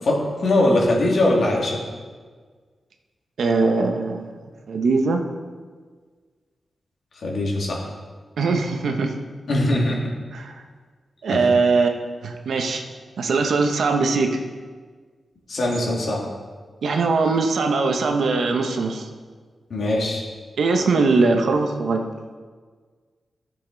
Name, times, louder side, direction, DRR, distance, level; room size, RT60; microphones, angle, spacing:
voice 1, 0.0-1.8 7.2-7.8 9.5-10.0 11.3-11.4 15.5-16.2 19.7-20.2, left 1 dB, 65° left, -2 dB, 2.3 m, -21 dB
voice 2, 3.4-4.3 4.7-5.2 8.4-9.1 10.3-10.5 11.2-12.8 13.2-14.4 16.8-19.1 20.6-22.1, right 3 dB, 85° right, 4 dB, 1.0 m, -21 dB
13.5 x 6.9 x 4.0 m, 1.5 s
wide cardioid pair, 115°, 0 cm